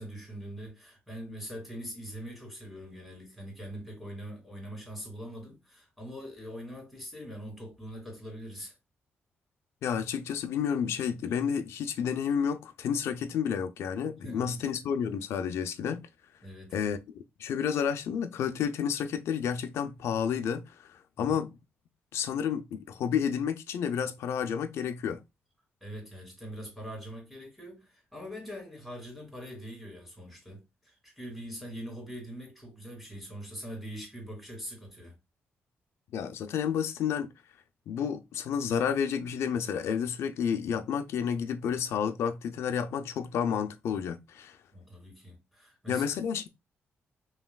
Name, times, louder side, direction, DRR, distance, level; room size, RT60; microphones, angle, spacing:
voice 1, 0.0-8.8 14.2-14.6 16.4-16.8 21.2-21.4 25.8-35.2 44.7-46.1, equal, ahead, 2.5 m, -43 dB
voice 2, 9.8-16.1 16.7-17.0 17.4-20.9 21.2-21.5 22.1-25.2 36.1-37.3 37.9-44.6 45.9-46.5, left 7 dB, 90° left, 0.5 m, -30 dB
5.5 x 3.0 x 2.3 m
cardioid pair, 135°, 4 cm